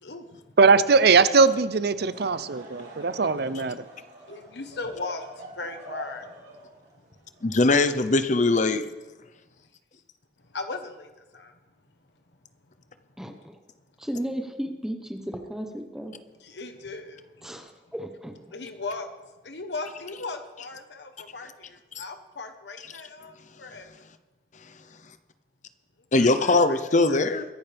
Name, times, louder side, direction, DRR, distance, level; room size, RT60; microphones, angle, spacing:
voice 1, 0.0-0.4 4.3-6.3 7.7-7.9 10.5-11.6 16.4-17.7 18.5-19.1 19.4-23.9 26.2-27.4, left 3 dB, 80° left, 7 dB, 1.2 m, -38 dB
voice 2, 0.6-3.8, right 4 dB, 65° right, 14 dB, 0.6 m, -20 dB
Laughter / Crowd, 1.9-8.4, right 1 dB, 80° right, 3.4 m, -46 dB
voice 3, 7.4-8.8 26.1-27.4, left 2 dB, 45° left, 10 dB, 0.8 m, -21 dB
voice 4, 13.2-13.5 14.0-16.1 17.4-18.4, equal, 5° right, 4 dB, 1.0 m, -34 dB
23.0 x 10.5 x 3.5 m, 1.1 s
head